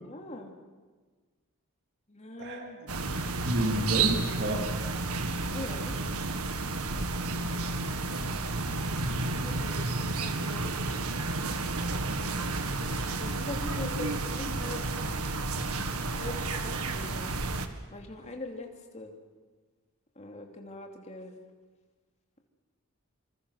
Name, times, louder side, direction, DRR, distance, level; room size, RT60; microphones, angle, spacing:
voice 1, 0.0-0.5 2.1-2.8 5.5-5.9 9.1-10.7 12.4-15.5 15.9-17.3 17.9-19.1 20.2-21.3, left 2 dB, 30° left, 2 dB, 2.9 m, -42 dB
sound 1, 2.9-17.7, right 3 dB, 85° right, 1.9 m, -31 dB
voice 2, 3.4-4.8 7.6-8.5, right 1 dB, 50° right, 3 dB, 2.4 m, -32 dB
26.5 x 26.5 x 6.5 m, 1.4 s
head